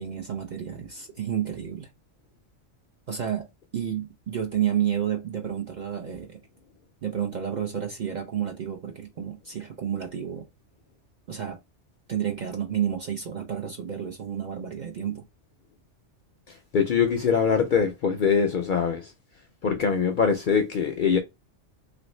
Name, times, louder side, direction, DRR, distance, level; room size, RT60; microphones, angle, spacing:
voice 1, 0.0-1.9 3.1-3.5 3.7-6.4 7.0-10.5 11.3-11.6 12.1-15.2, right 9 dB, 50° right, 0.5 m, -30 dB
voice 2, 16.7-19.1 19.6-21.2, left 6 dB, 60° left, 0.5 m, -23 dB
3.1 x 2.6 x 3.0 m
omnidirectional pair, 1.2 m